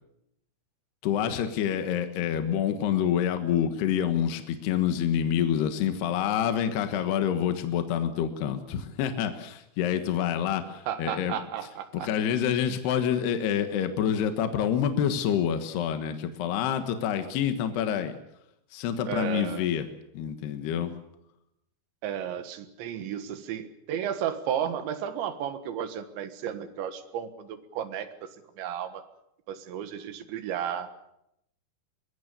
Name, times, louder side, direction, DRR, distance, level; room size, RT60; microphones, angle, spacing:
voice 1, 1.0-11.3 11.9-18.2 18.7-19.9 20.1-20.9, left 9 dB, 65° left, 8 dB, 3.1 m, -27 dB
voice 2, 10.9-12.1 19.1-19.7 22.0-28.3 28.6-29.0 29.5-30.9, right 9 dB, 70° right, 10 dB, 3.7 m, -33 dB
24.5 x 21.5 x 6.9 m, 0.79 s
omnidirectional pair, 5.8 m